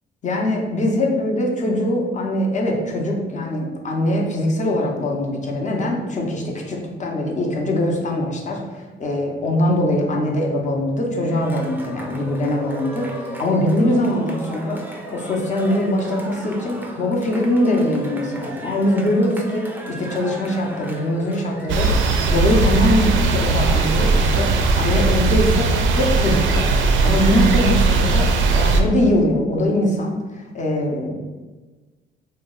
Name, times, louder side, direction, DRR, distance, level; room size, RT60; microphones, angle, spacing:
voice 1, 0.2-14.8 15.1-25.7 25.9-26.7 27.0-31.1, left 1 dB, 35° left, -1 dB, 0.7 m, -22 dB
Cheering, 11.4-25.2, right 1 dB, 10° right, 0.4 m, -36 dB
sound 1, 21.7-28.8, right 3 dB, 75° right, 0.4 m, -18 dB
2.8 x 2.1 x 3.7 m, 1.3 s
cardioid pair, 90°, 20 cm